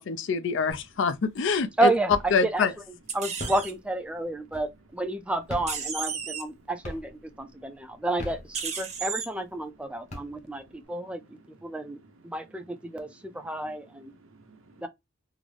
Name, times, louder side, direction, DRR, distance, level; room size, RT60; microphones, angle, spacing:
voice 1, 0.0-1.9 2.3-2.7, left 5 dB, 60° left, 0.4 m, -25 dB
sound 1, 0.7-1.2 1.5-2.6 3.2-5.0 5.4-6.5 6.8-7.4 8.0-9.0 9.5-9.6 9.9-10.8, left 1 dB, 35° left, 0.9 m, -40 dB
voice 2, 1.8-2.7 3.1-7.1 7.4-10.6 10.9-11.2 11.6-12.0 12.2-13.1 13.3-14.1 14.8-14.9, right 2 dB, 5° right, 0.4 m, -30 dB
sound 2, 3.1-3.7 5.7-6.4 8.5-9.3, right 6 dB, 35° right, 0.7 m, -33 dB
voice 3, 6.2-6.7 7.2-8.1 9.9-14.9, right 3 dB, 70° right, 0.7 m, -58 dB
3.7 x 2.0 x 3.2 m
head